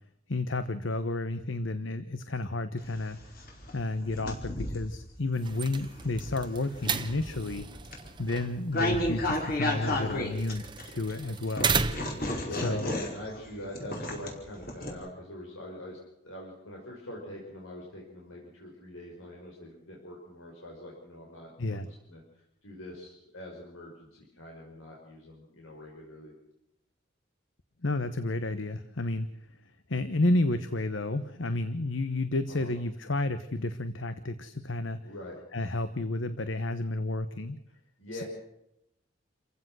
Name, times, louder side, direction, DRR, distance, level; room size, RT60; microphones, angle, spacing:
voice 1, 0.3-3.2 3.7-7.7 8.2-11.7 12.6-13.0 21.6-21.9 27.8-29.3 29.9-35.0 35.5-37.6 38.1-38.2, left 2 dB, 70° left, 11 dB, 1.1 m, -31 dB
sound 1, 2.8-4.9 5.5-11.1 11.6-14.9, left 1 dB, 45° left, 4.9 m, -33 dB
sound 2, 5.3-12.3, right 5 dB, 25° right, 1.0 m, -35 dB
voice 2, 9.8-10.2 12.4-26.3 32.5-32.7 35.0-35.4 37.7-38.2, left 1 dB, 90° left, -2 dB, 5.5 m, -43 dB
29.0 x 16.0 x 6.3 m, 0.83 s
head